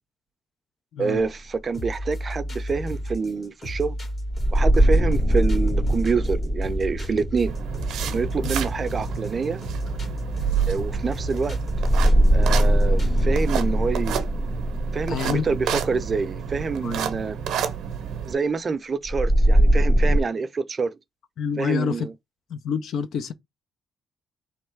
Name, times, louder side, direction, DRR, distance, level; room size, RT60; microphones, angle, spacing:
voice 1, 1.0-3.9 4.5-7.5 8.0-9.6 10.7-11.6 12.0-14.3 14.9-17.4 18.3-20.9 21.6-22.1, right 4 dB, 40° right, 0.5 m, -27 dB
sound 1, 1.2-1.3 4.3-9.0 11.7-16.7 19.0-20.2, right 1 dB, 25° left, 0.8 m, -21 dB
sound 2, 1.7-13.7, equal, 45° left, 2.0 m, -33 dB
sound 3, 7.5-18.3, right 8 dB, 80° right, 0.6 m, -30 dB
voice 2, 15.1-15.8 16.8-17.2 21.4-22.1 22.5-23.3, left 7 dB, 70° left, 0.6 m, -28 dB
3.5 x 3.1 x 4.5 m
cardioid pair, 90°, 0 cm